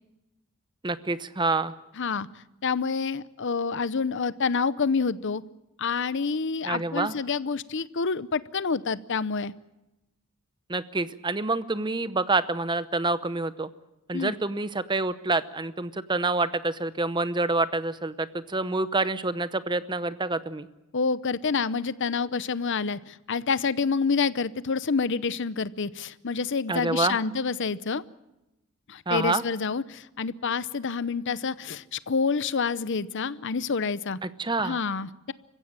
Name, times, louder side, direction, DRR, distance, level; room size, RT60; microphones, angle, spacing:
voice 1, 0.8-1.7 6.6-7.1 10.7-13.7 14.1-20.7 26.7-27.2 29.1-29.4 34.2-34.8, right 3 dB, 20° right, 14 dB, 0.8 m, -27 dB
voice 2, 2.0-2.3 2.6-5.4 5.8-9.5 14.1-14.3 20.9-28.0 28.9-34.2 34.6-35.3, left 5 dB, 55° left, 17 dB, 0.7 m, -28 dB
25.0 x 15.5 x 8.7 m, 0.96 s
head